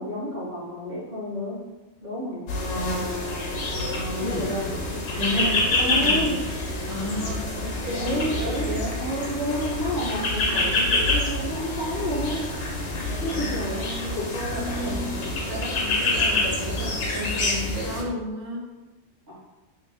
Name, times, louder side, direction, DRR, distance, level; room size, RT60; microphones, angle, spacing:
voice 1, 0.0-1.6 2.0-2.5 4.1-4.8 5.4-6.4 8.0-8.7 9.0-12.4 13.2-13.8 14.1-15.1 19.3-19.4, equal, 35° right, -9 dB, 1.3 m, -30 dB
sound 1, 2.5-18.0, left 2 dB, 65° left, 0.9 m, -27 dB
voice 2, 5.1-6.3 6.9-8.9 13.3-14.2 14.5-15.0 15.5-18.6, equal, 85° right, -6 dB, 1.3 m, -32 dB
3.2 x 2.2 x 3.4 m, 1.1 s
omnidirectional pair, 1.3 m